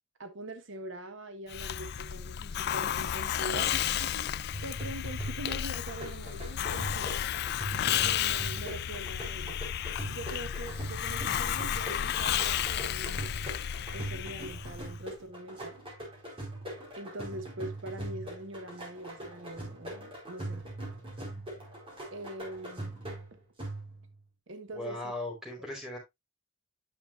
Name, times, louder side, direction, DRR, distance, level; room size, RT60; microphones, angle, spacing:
voice 1, 0.2-4.3 4.6-7.2 7.9-9.6 10.1-13.4 13.9-15.8 17.0-20.6 22.1-23.0 24.5-25.1, right 1 dB, 75° right, 1.2 m, -43 dB
Hiss, 1.5-15.0, left 10 dB, 55° left, 0.3 m, -32 dB
sound 1, 4.5-24.2, right 1 dB, 30° right, 4.5 m, -41 dB
voice 2, 24.7-26.0, left 1 dB, 5° right, 4.3 m, -38 dB
9.7 x 7.1 x 2.6 m
head